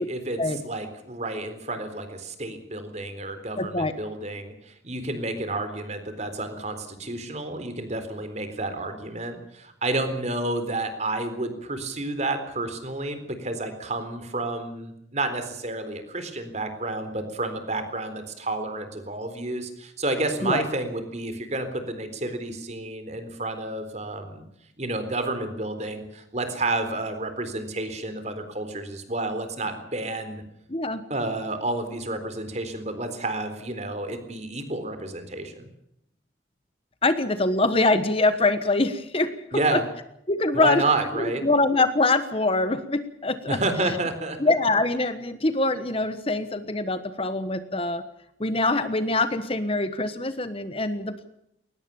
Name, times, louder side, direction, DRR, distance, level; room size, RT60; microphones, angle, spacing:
voice 1, 0.0-0.4 0.6-24.4 24.8-30.4 31.1-35.7 39.5-39.8 40.5-41.5 43.5-44.4, right 2 dB, 35° right, 9 dB, 3.9 m, -30 dB
voice 2, 3.6-3.9 20.4-20.6 30.7-31.0 37.0-39.8 40.3-40.8 41.1-43.6 44.4-48.0 48.4-51.3, left 2 dB, 30° left, 11 dB, 1.3 m, -24 dB
22.0 x 19.5 x 7.0 m, 0.77 s
head